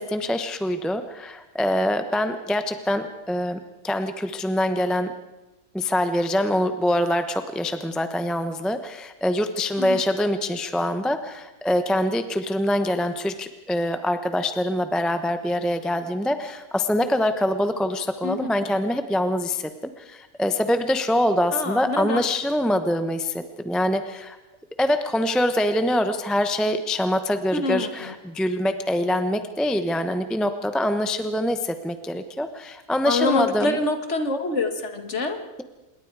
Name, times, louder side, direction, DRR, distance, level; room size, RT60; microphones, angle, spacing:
voice 1, 0.0-3.6 3.8-5.1 5.7-24.4 24.8-33.9, left 1 dB, ahead, 9 dB, 0.7 m, -24 dB
voice 2, 21.5-22.2 27.5-28.1 33.1-35.4, left 2 dB, 50° left, 7 dB, 2.1 m, -25 dB
26.5 x 22.0 x 4.8 m, 1.1 s
omnidirectional pair, 1.6 m